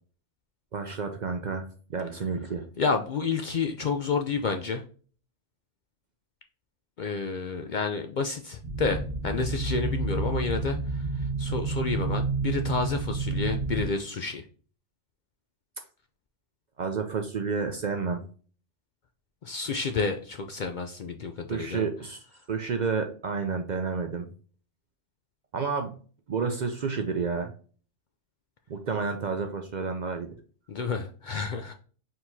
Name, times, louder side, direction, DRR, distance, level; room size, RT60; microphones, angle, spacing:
voice 1, 0.7-2.6 16.8-18.2 21.5-24.3 25.5-26.0 26.3-27.5 28.7-30.4, right 5 dB, 55° right, 5 dB, 0.5 m, -30 dB
voice 2, 2.8-4.8 7.0-14.5 19.4-21.9 30.7-31.7, left 4 dB, 60° left, 5 dB, 0.5 m, -30 dB
sound 1, 8.6-13.9, right 3 dB, 20° right, 1.0 m, -30 dB
4.5 x 3.8 x 2.6 m, 0.40 s
omnidirectional pair, 1.3 m